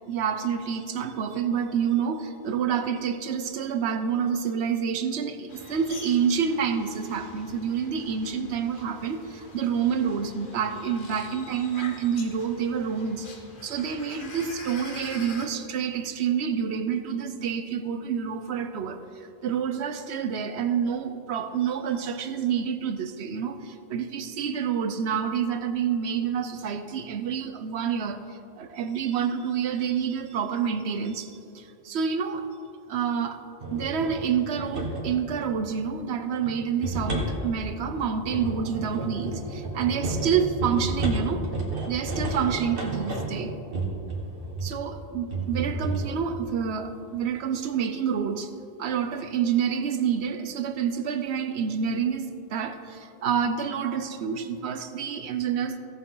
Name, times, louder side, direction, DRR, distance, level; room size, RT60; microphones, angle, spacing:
voice 1, 0.1-13.3 13.6-19.0 19.4-32.5 32.9-33.4 33.7-41.5 41.9-43.6 44.6-48.5 48.8-55.8, right 7 dB, 80° right, 9 dB, 1.0 m, -28 dB
sound 1, 5.5-15.5, left 3 dB, 55° left, 1.2 m, -45 dB
sound 2, 33.6-35.2 36.3-44.8 45.3-46.1, right 2 dB, 60° right, 1.8 m, -31 dB
16.5 x 6.7 x 3.9 m, 2.7 s
omnidirectional pair, 1.1 m